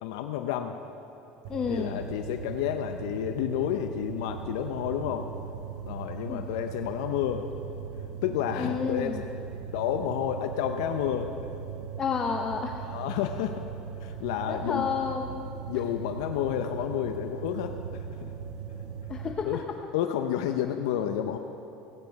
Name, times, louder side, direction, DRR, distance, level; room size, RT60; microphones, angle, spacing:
voice 1, 0.0-0.8 1.7-5.3 5.9-7.5 8.2-9.1 9.7-11.3 12.8-13.6 14.0-14.9 15.7-18.3 19.4-19.6 19.9-21.4, left 10 dB, 85° left, 6 dB, 0.6 m, -30 dB
sound 1, 1.4-19.3, right 7 dB, 70° right, 1.5 m, -39 dB
voice 2, 1.5-2.0 6.3-6.5 8.6-9.2 12.0-12.8 14.5-15.6 19.1-19.8, left 6 dB, 30° left, 3 dB, 0.6 m, -31 dB
16.0 x 9.3 x 5.2 m, 2.8 s
cardioid pair, 135°, 3 cm